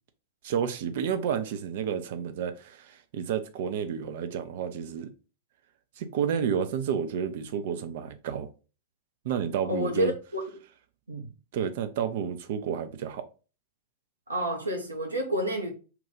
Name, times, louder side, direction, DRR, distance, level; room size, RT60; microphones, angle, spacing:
voice 1, 0.4-5.1 6.0-8.5 9.2-10.1 11.5-13.2, right 8 dB, 55° right, 0.4 m, -30 dB
voice 2, 9.6-10.4 11.1-11.3 14.3-15.7, equal, 80° right, 0.8 m, -29 dB
2.9 x 2.3 x 3.7 m
figure-of-eight pair, 90°, 0 cm